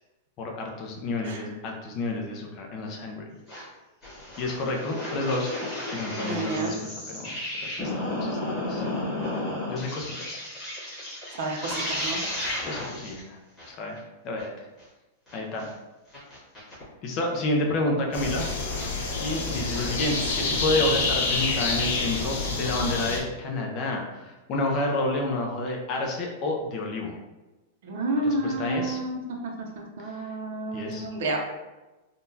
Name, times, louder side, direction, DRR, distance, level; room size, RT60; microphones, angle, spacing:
voice 1, 0.4-3.2 4.4-5.5 5.9-7.2 7.6-8.8 9.7-10.4 12.6-13.4 13.7-14.0 14.2-14.7 15.3-15.7 17.0-18.5 19.2-27.2 28.2-29.0 30.7-31.1, left 2 dB, 25° left, 1 dB, 0.4 m, -29 dB
sound 1, 3.5-3.6 4.0-13.2 13.6-13.7 14.0-14.1 14.4-14.5 14.8-14.9 15.3-15.7 16.1-16.8 17.3-17.4 18.2-18.3 18.6-18.8 19.2-20.7, left 1 dB, 5° left, 1.2 m, -33 dB
voice 2, 6.2-6.8 11.4-12.2 27.8-31.4, right 2 dB, 55° right, 0 dB, 0.6 m, -30 dB
sound 2, 18.1-23.2, left 3 dB, 55° left, 0.8 m, -28 dB
3.7 x 2.2 x 2.6 m, 1.1 s
supercardioid pair, 180°, 0 cm